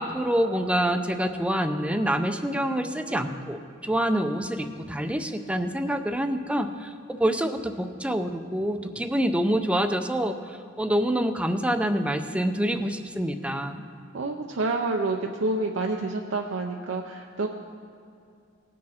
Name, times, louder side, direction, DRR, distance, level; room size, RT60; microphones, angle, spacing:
voice 1, 0.0-13.8, equal, 5° right, 8 dB, 0.5 m, -26 dB
voice 2, 14.1-17.5, right 3 dB, 85° right, 1 dB, 0.6 m, -28 dB
18.5 x 6.4 x 4.2 m, 2.5 s
head